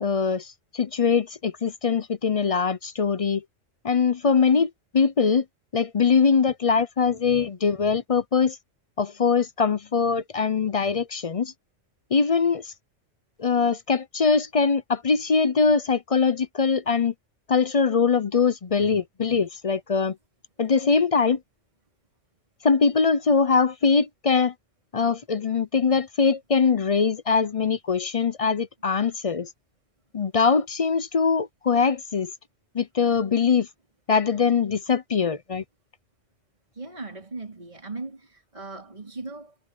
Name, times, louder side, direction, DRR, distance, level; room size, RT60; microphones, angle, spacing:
voice 1, 0.0-3.4 3.8-5.4 5.7-8.6 9.0-11.5 12.1-12.7 13.4-17.1 17.5-20.2 20.6-21.4 22.6-24.5 24.9-29.5 30.1-32.3 32.7-33.7 34.1-35.6, left 5 dB, 40° left, 0.5 m, -22 dB
voice 2, 36.7-39.6, right 3 dB, 35° right, 4.4 m, -38 dB
omnidirectional pair, 1.3 m